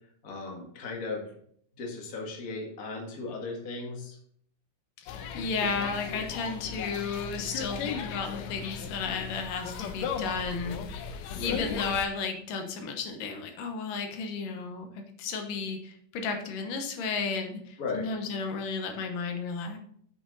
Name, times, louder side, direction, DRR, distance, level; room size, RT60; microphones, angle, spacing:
voice 1, 0.2-1.2 1.8-4.2 11.3-11.7 17.8-18.1, left 3 dB, 35° left, 0 dB, 1.6 m, -36 dB
voice 2, 5.0-10.8 11.4-19.8, left 5 dB, 90° left, 5 dB, 2.8 m, -33 dB
sound 1, 5.1-12.0, left 6 dB, 75° left, 1.8 m, -36 dB
8.2 x 6.0 x 4.0 m, 0.63 s
omnidirectional pair, 3.7 m